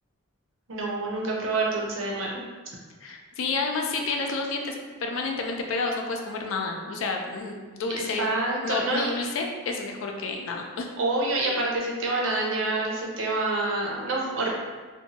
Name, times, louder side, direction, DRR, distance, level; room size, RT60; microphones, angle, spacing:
voice 1, 0.7-2.4 7.9-9.1 11.0-14.5, right 2 dB, 60° right, -2 dB, 0.6 m, -27 dB
voice 2, 3.0-4.7 5.0-8.3 8.6-10.9, left 3 dB, 60° left, 2 dB, 0.3 m, -30 dB
2.6 x 2.2 x 2.8 m, 1.5 s
head